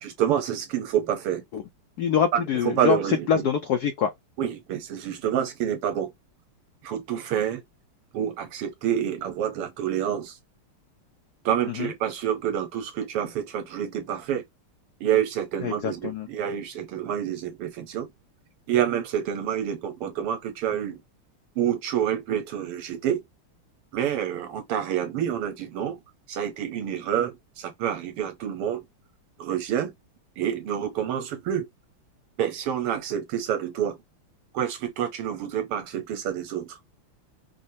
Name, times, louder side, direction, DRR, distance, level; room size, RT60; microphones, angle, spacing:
voice 1, 0.0-1.4 2.3-3.4 4.4-6.1 6.8-7.6 8.1-10.3 11.5-14.4 15.0-18.1 18.7-21.0 21.6-23.2 23.9-26.0 26.3-28.8 29.4-29.9 30.4-31.7 32.4-34.0 34.5-36.7, right 10 dB, 85° right, 1.9 m, -28 dB
voice 2, 2.0-4.1 11.7-11.9 15.6-16.3, left 7 dB, 85° left, 0.8 m, -25 dB
5.3 x 2.0 x 2.7 m
omnidirectional pair, 2.4 m